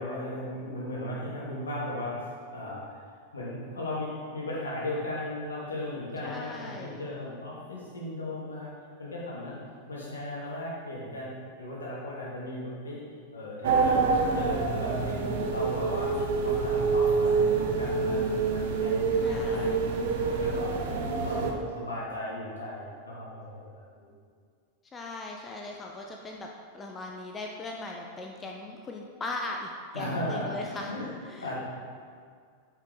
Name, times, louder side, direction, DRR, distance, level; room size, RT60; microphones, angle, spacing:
voice 1, 0.0-3.0 3.3-8.7 9.0-9.6 9.9-11.3 11.6-13.0 13.3-15.2 15.5-16.1 16.4-18.2 18.5-19.8 20.3-24.1 29.9-31.1 31.4-31.5, left 1 dB, 70° left, -5 dB, 2.5 m, -36 dB
voice 2, 6.2-7.0 19.2-20.1 24.9-26.5 26.7-30.9 31.2-31.5, left 2 dB, 20° left, 1 dB, 0.8 m, -39 dB
sound 1, 13.6-21.5, right 4 dB, 55° right, 1.0 m, -26 dB
8.9 x 7.4 x 4.0 m, 2.1 s
figure-of-eight pair, 90°, 0 cm